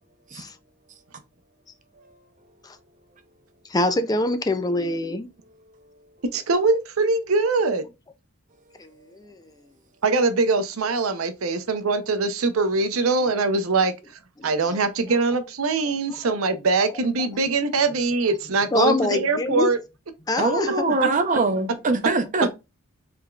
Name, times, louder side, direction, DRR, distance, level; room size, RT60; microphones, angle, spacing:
voice 1, 3.7-5.3 8.8-9.5 17.2-17.3 18.7-19.7 20.3-21.1, left 2 dB, 20° left, 0.4 m, -25 dB
voice 2, 6.3-7.9 10.0-13.9 14.4-19.8 21.0-21.1, right 3 dB, 80° right, 0.7 m, -22 dB
voice 3, 20.4-22.5, right 3 dB, 35° right, 0.7 m, -23 dB
4.9 x 3.5 x 2.3 m
head